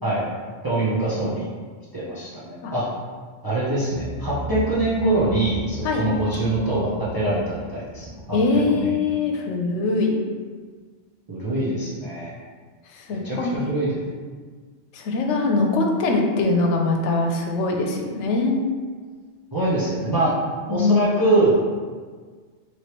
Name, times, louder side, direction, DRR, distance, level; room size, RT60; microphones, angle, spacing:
voice 1, 0.6-1.5 1.9-2.9 3.4-8.2 8.7-8.9 11.3-12.3 13.2-14.0 19.5-20.4 20.7-21.6, right 2 dB, 25° right, -9 dB, 0.5 m, -23 dB
sound 1, 3.7-8.6, right 1 dB, 70° right, 1.1 m, -36 dB
voice 2, 8.3-10.2 12.9-13.6 14.9-18.6 20.7-21.1, left 3 dB, 80° left, 2 dB, 0.9 m, -22 dB
3.2 x 3.1 x 2.9 m, 1.6 s
omnidirectional pair, 1.2 m